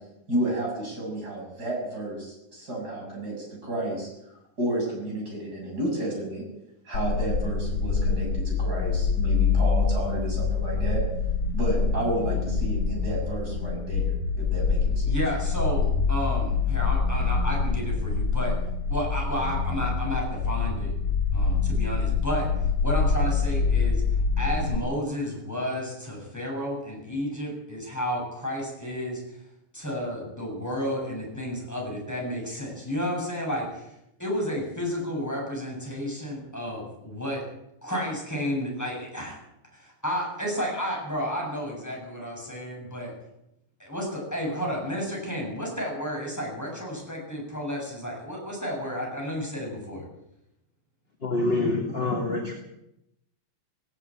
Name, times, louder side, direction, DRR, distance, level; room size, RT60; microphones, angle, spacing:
voice 1, 0.3-4.1 4.6-6.4 6.8-11.0 11.5-15.1, right 1 dB, 30° right, -1 dB, 7.6 m, -31 dB
sound 1, 6.9-24.8, left 5 dB, 65° left, 2.2 m, -25 dB
voice 2, 15.0-18.5 18.9-20.9 21.3-22.5 22.8-24.0 24.4-29.4 29.7-33.9 34.2-37.4 37.8-39.4 39.7-43.1 43.8-50.0, equal, 5° left, -2 dB, 7.8 m, -31 dB
voice 3, 51.2-52.5, left 2 dB, 20° left, 1 dB, 2.4 m, -26 dB
17.5 x 17.0 x 8.8 m, 0.85 s
omnidirectional pair, 3.4 m